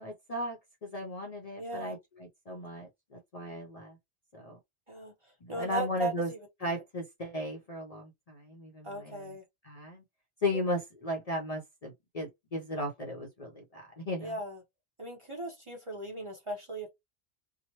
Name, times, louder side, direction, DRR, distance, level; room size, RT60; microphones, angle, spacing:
voice 1, 0.0-4.0 4.3-4.6 5.4-6.3 6.6-9.4 9.6-10.0 10.4-14.4, left 1 dB, 45° left, 0.6 m, -36 dB
voice 2, 1.6-1.9 4.9-5.1 5.5-6.7 8.8-9.4 10.5-10.6 14.2-14.6 15.0-16.9, right 1 dB, 35° right, 0.7 m, -37 dB
2.9 x 2.1 x 2.9 m
omnidirectional pair, 1.1 m